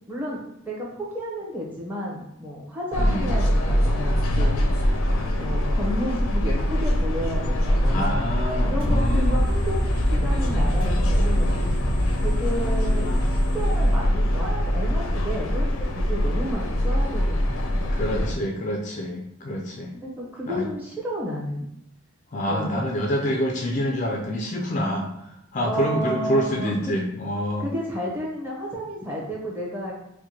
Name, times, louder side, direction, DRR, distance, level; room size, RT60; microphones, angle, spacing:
voice 1, 0.1-4.6 5.4-8.2 8.6-9.8 10.1-11.6 12.2-18.3 20.0-21.7 22.5-22.9 25.6-27.0 27.6-29.9, equal, 10° right, -4 dB, 0.8 m, -32 dB
sound 1, 2.9-18.3, equal, 85° left, 0.5 m, -23 dB
voice 2, 7.9-9.4 17.9-19.9 20.5-20.7 22.3-25.1 25.5-27.7, equal, 35° left, 1 dB, 0.4 m, -26 dB
sound 2, 8.8-14.4, equal, 25° right, 1.2 m, -29 dB
4.5 x 2.1 x 2.8 m, 0.77 s
head